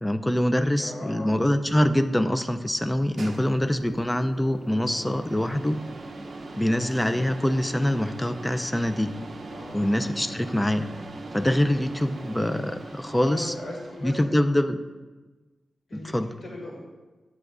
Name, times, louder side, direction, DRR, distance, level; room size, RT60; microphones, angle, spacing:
voice 1, 0.0-5.8 6.6-9.1 9.7-10.9 11.3-13.5 14.0-14.8 15.9-16.3, left 1 dB, 10° left, 9 dB, 0.3 m, -24 dB
voice 2, 0.8-1.5 3.5-3.6 6.4-6.7 9.5-10.1 13.1-14.4 15.9-16.2 16.4-16.8, left 1 dB, 80° left, -5 dB, 2.5 m, -39 dB
sound 1, 2.8-14.4, right 2 dB, 50° right, 0.6 m, -41 dB
10.0 x 7.0 x 2.4 m, 1.3 s
wide cardioid pair, 140°, 0 cm